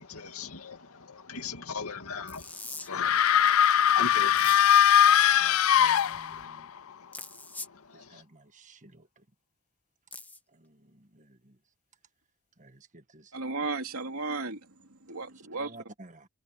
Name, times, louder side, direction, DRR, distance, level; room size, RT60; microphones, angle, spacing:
voice 1, 0.0-8.2, left 5 dB, 90° left, 2.4 m, -41 dB
sound 1, 2.3-2.9 4.4-4.8 7.1-7.7 10.1-10.4, left 2 dB, 10° left, 1.4 m, -42 dB
sound 2, 2.9-6.6, left 9 dB, 70° left, 0.5 m, -21 dB
voice 2, 5.3-6.7 7.9-9.2 10.5-11.6 12.6-13.3 15.6-16.3, right 2 dB, 35° right, 1.5 m, -53 dB
voice 3, 13.3-15.8, right 3 dB, 75° right, 3.4 m, -35 dB
head